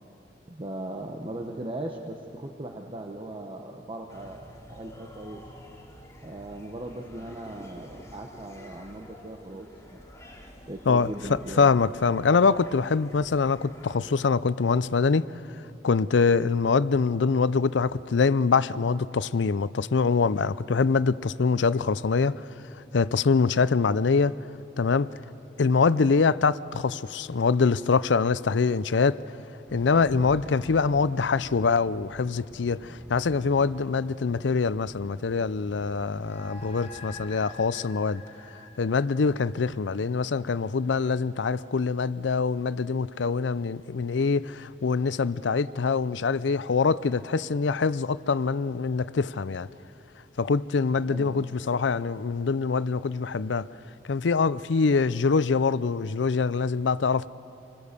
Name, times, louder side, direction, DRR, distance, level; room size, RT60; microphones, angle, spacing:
voice 1, 0.5-5.4 6.2-10.0 10.7-11.7 51.0-51.5, right 1 dB, 30° right, 1.1 m, -38 dB
sound 1, 4.1-14.0, equal, 15° left, 2.7 m, -49 dB
voice 2, 10.9-15.3 15.8-22.4 22.9-24.4 24.8-25.1 25.6-29.2 29.7-38.2 38.8-49.7 50.4-53.7 54.1-57.3, left 4 dB, 85° left, 0.5 m, -24 dB
sound 2, 29.7-37.3, equal, 10° right, 7.0 m, -47 dB
sound 3, 36.1-40.8, left 3 dB, 35° left, 2.5 m, -47 dB
27.0 x 21.5 x 6.8 m
head